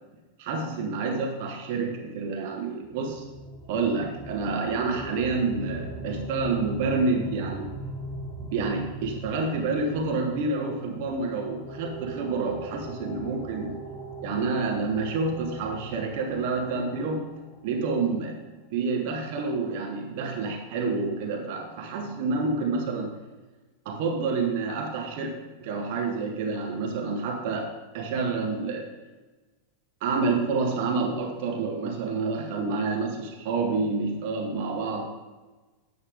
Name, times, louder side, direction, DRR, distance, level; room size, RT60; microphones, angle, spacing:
voice 1, 0.4-3.3 3.7-7.7 8.4-13.7 14.2-17.2 17.6-23.1 23.8-25.3 25.6-27.7 27.9-28.8 30.0-35.1, right 4 dB, 50° right, 2 dB, 1.3 m, -28 dB
sound 1, 2.9-17.6, right 2 dB, 15° left, 2.0 m, -40 dB
10.0 x 7.2 x 3.6 m, 1.2 s
figure-of-eight pair, 90°, 0 cm